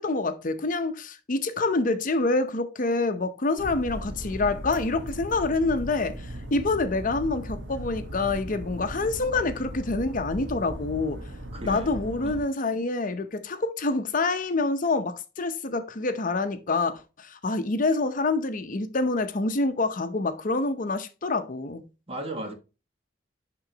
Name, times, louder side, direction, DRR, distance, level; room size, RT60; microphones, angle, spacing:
voice 1, 0.0-11.2 11.6-21.8, left 3 dB, 45° left, 0.7 m, -27 dB
sound 1, 3.6-12.4, equal, 90° right, 1.4 m, -37 dB
voice 2, 11.5-11.9 12.2-12.4 22.1-22.5, right 1 dB, 35° right, 1.4 m, -35 dB
11.0 x 3.8 x 2.8 m
head